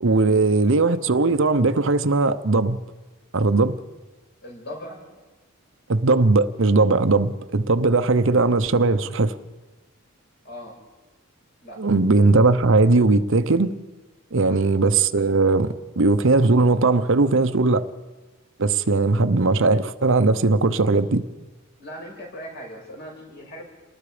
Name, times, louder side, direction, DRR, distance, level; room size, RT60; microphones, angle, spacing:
voice 1, 0.0-2.8 3.3-3.8 5.9-9.4 11.8-13.7 14.3-17.9 18.6-21.2, right 3 dB, 60° right, 0.8 m, -19 dB
voice 2, 4.4-5.0 10.4-10.8 11.6-11.8 14.3-14.6 21.8-23.6, equal, 50° left, 6.4 m, -39 dB
28.0 x 19.5 x 5.1 m
head